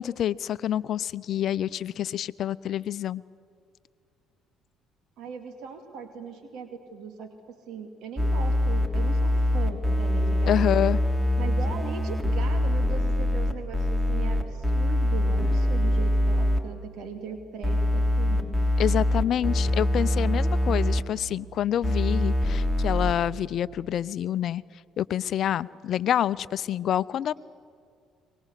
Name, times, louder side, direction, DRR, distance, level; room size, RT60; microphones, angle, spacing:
voice 1, 0.0-3.2 10.5-11.0 18.8-24.6 25.0-27.3, left 10 dB, 60° left, 18 dB, 0.6 m, -27 dB
voice 2, 5.2-10.8 11.4-18.6, right 5 dB, 70° right, 6 dB, 2.5 m, -39 dB
sound 1, 8.2-16.6 17.6-21.0 21.8-23.1, left 1 dB, 10° right, 3.1 m, -24 dB
23.5 x 20.5 x 8.3 m, 2.3 s
hypercardioid pair, 60°, 0 cm